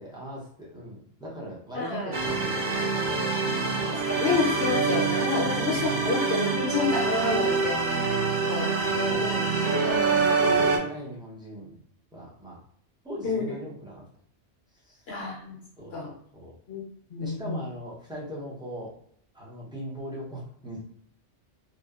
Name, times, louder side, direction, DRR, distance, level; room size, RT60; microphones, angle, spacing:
voice 1, 0.0-3.8 5.4-5.6 7.5-7.7 8.8-11.8 12.1-12.6 13.0-14.0 14.9-15.0 15.8-16.5 17.2-18.9 19.3-20.8, equal, 5° right, -6 dB, 0.5 m, -38 dB
voice 2, 1.7-2.2 3.9-7.8 8.5-9.3 13.2-13.5 15.1-15.6 15.9-16.1 16.7-16.8 17.1-17.6, left 4 dB, 65° left, -2 dB, 0.8 m, -29 dB
sound 1, 2.1-10.8, right 4 dB, 50° right, 0.6 m, -26 dB
2.7 x 2.1 x 2.3 m, 0.66 s
omnidirectional pair, 1.2 m